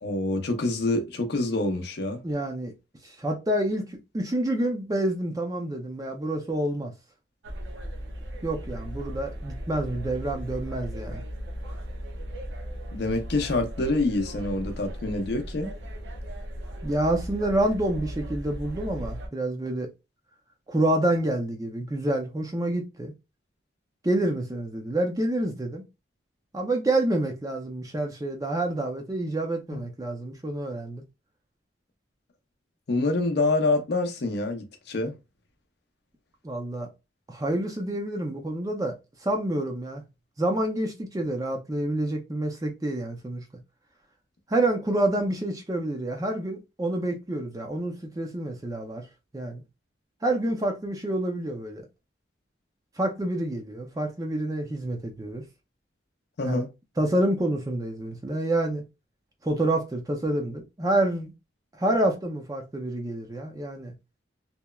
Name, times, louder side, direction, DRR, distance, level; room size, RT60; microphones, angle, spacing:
voice 1, 0.0-2.2 12.9-15.7 29.7-29.8 32.9-35.1 56.4-56.7, left 2 dB, 55° left, 0.5 m, -26 dB
voice 2, 2.2-2.7 3.0-6.9 8.4-11.2 16.8-19.9 20.7-23.1 24.0-25.8 26.5-31.0 36.4-36.9 37.3-38.9 39.2-40.0 40.4-43.4 44.5-49.0 49.3-49.6 50.2-51.8 53.0-55.4 56.4-56.6 57.0-58.8 59.4-61.3 61.8-63.9, right 1 dB, 20° right, 0.4 m, -28 dB
sound 1, 7.4-19.3, equal, 70° right, 0.5 m, -37 dB
2.9 x 2.0 x 2.2 m
head